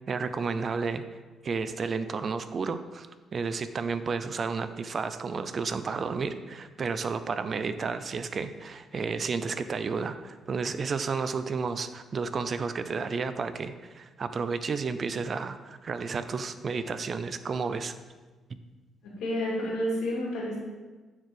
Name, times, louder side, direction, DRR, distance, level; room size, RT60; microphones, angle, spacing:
voice 1, 0.1-1.0 1.4-17.9, right 5 dB, 45° right, 11 dB, 0.5 m, -32 dB
voice 2, 19.0-20.6, equal, 85° left, -3 dB, 2.5 m, -30 dB
9.6 x 4.6 x 5.0 m, 1.3 s
cardioid pair, 90°, 0 cm